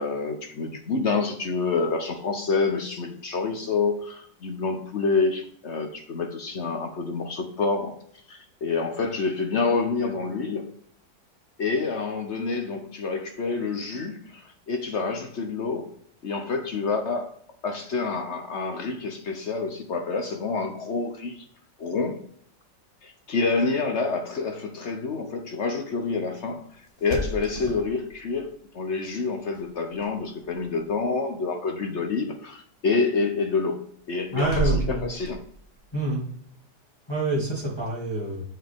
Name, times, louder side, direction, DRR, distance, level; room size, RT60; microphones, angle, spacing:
voice 1, 0.0-7.9 8.3-10.7 11.6-15.9 16.2-17.3 17.6-21.4 21.8-22.2 23.0-26.6 27.0-35.4, left 4 dB, 50° left, 5 dB, 0.9 m, -28 dB
sound 1, 26.9-28.4 29.5-30.1 30.4-30.9 34.3-35.7, right 2 dB, 30° left, 1.3 m, -31 dB
voice 2, 34.3-35.0 35.9-36.2 37.1-38.4, right 1 dB, 15° left, -7 dB, 2.7 m, -27 dB
7.4 x 5.7 x 3.6 m, 0.63 s
omnidirectional pair, 2.0 m